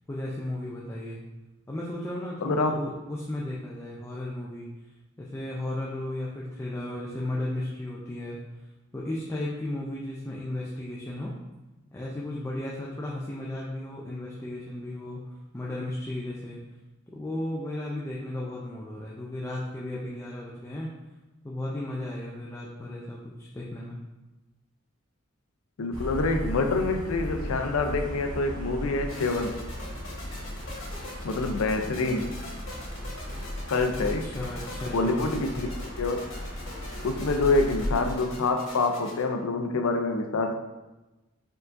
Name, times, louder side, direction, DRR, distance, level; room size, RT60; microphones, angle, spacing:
voice 1, 0.1-1.2 1.7-4.7 5.2-8.4 8.9-11.3 11.9-16.6 17.1-20.9 21.4-24.0 34.2-35.4, left 1 dB, 15° left, -5 dB, 0.4 m, -35 dB
voice 2, 2.4-2.7 25.8-29.6 31.2-32.4 33.7-34.4 34.9-35.7 36.0-36.3 37.0-40.5, left 3 dB, 85° left, 6 dB, 0.5 m, -26 dB
sound 1, 25.9-38.2, equal, 65° right, 1.1 m, -36 dB
sound 2, 29.1-39.2, left 2 dB, 65° left, 1.4 m, -43 dB
4.6 x 3.8 x 2.5 m, 1.1 s
head